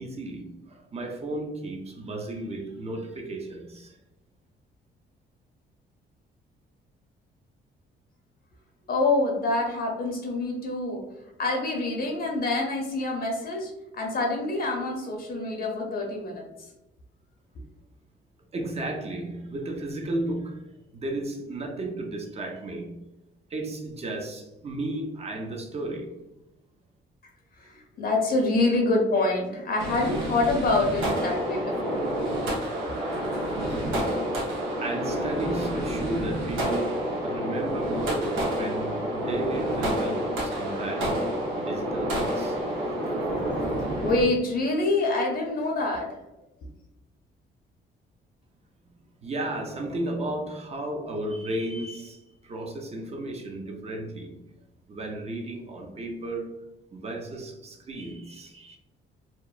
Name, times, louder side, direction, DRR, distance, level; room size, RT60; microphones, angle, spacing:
voice 1, 0.0-4.0 18.5-23.0 23.5-26.1 34.8-41.3 41.6-42.6 48.9-54.4 54.9-56.5 56.9-58.8, right 1 dB, 30° right, 0.5 m, -34 dB
voice 2, 8.9-11.0 11.4-16.5 27.6-32.0 43.6-46.1, left 2 dB, 50° left, 0.6 m, -26 dB
sound 1, 29.8-44.2, right 1 dB, 85° right, 0.7 m, -29 dB
2.8 x 2.0 x 2.3 m
cardioid pair, 90°, 20 cm